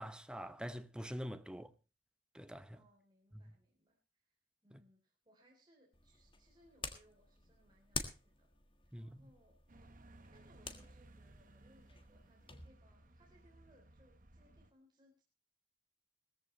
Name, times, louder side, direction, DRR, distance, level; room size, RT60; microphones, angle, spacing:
voice 1, 0.0-1.7 2.3-2.8 3.3-3.5 4.7-4.8 8.9-9.2, equal, 5° right, 0.8 m, -45 dB
voice 2, 2.7-4.0 4.3-4.4 4.6-8.5 9.0-9.9 10.3-15.2, equal, 25° right, 3.4 m, -69 dB
sound 1, 5.9-12.7, left 5 dB, 30° left, 1.6 m, -49 dB
sound 2, 9.7-14.7, right 1 dB, 50° right, 1.2 m, -60 dB
18.0 x 14.0 x 3.1 m
head